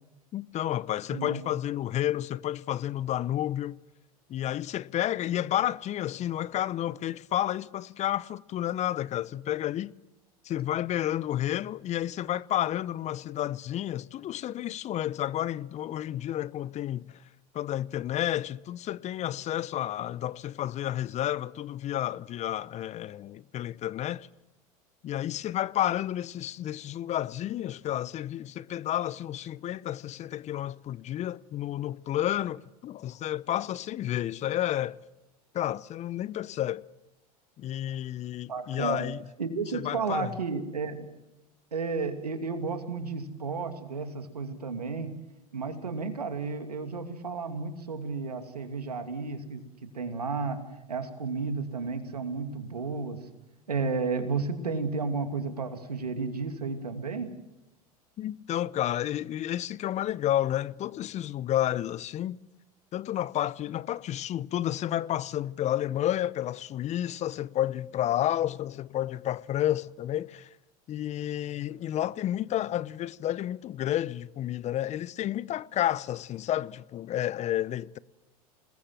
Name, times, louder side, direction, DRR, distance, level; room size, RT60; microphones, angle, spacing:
voice 1, 0.3-3.8 4.3-9.9 10.4-17.2 17.5-24.3 25.0-35.0 35.5-36.8 37.6-39.2 39.7-40.3 58.2-62.4 62.9-70.5 70.9-78.0, left 12 dB, 35° left, 0.8 m, -31 dB
voice 2, 1.1-1.5 38.5-39.0 39.4-41.1 41.7-45.2 45.5-49.6 49.9-50.6 50.9-53.2 53.7-57.3, right 4 dB, 90° right, 2.7 m, -32 dB
27.5 x 20.5 x 7.6 m
hypercardioid pair, 85°, 20 cm